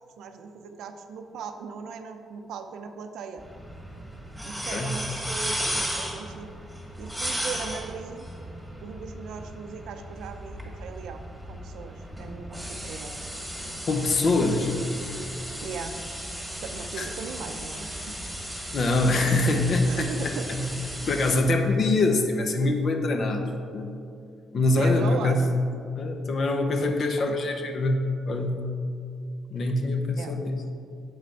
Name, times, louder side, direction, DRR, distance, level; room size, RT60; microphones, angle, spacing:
voice 1, 0.2-3.4 4.4-6.5 7.0-8.3 8.8-13.1 15.6-15.9 16.6-18.1 19.2-19.4 19.8-20.5 24.8-25.4 25.7-25.8 27.3-27.4 30.1-30.4, right 6 dB, 80° right, 7 dB, 0.5 m, -38 dB
sound 1, 3.4-21.4, equal, ahead, 1.8 m, -35 dB
voice 2, 13.9-14.7 17.0-17.1 18.7-20.6 21.1-23.5 23.7-23.9 24.5-25.5 26.0-28.6 29.5-30.5, left 2 dB, 55° left, 4 dB, 0.8 m, -24 dB
7.7 x 5.0 x 4.6 m, 2.5 s
cardioid pair, 90°, 0 cm